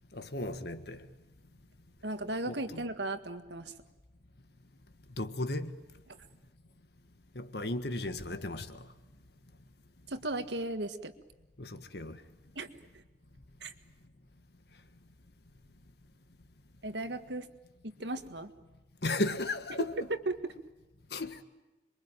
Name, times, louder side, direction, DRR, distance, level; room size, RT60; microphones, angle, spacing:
voice 1, 0.1-1.0 2.5-2.8 5.2-5.7 7.3-8.8 11.6-12.2 19.0-20.0 21.1-21.4, left 2 dB, 65° left, 1.6 m, -35 dB
voice 2, 2.0-3.7 6.1-6.2 10.1-11.1 12.6-12.7 12.9-13.0 13.6-13.7 16.8-17.5 17.8-18.5 19.7-19.9 20.3-20.5, right 2 dB, 75° right, 1.8 m, -36 dB
26.5 x 23.0 x 9.1 m
head